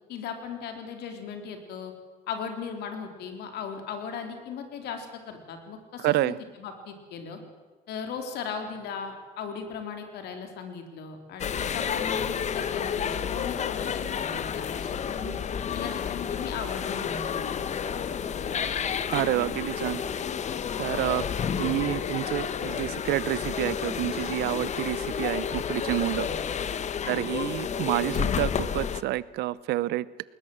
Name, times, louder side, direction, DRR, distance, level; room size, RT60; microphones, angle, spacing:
voice 1, 0.1-1.9 2.3-7.4 7.9-15.3 15.7-17.9 18.2-18.8 26.2-26.3 27.0-27.2, left 6 dB, 75° left, 6 dB, 3.7 m, -38 dB
voice 2, 6.0-6.4 19.1-20.0 20.8-21.3 21.6-26.3 27.1-30.1, right 16 dB, 80° right, 20 dB, 0.7 m, -28 dB
sound 1, 11.4-29.0, left 7 dB, 45° left, 1.1 m, -30 dB
20.5 x 19.5 x 7.9 m, 1.3 s
cardioid pair, 110°, 17 cm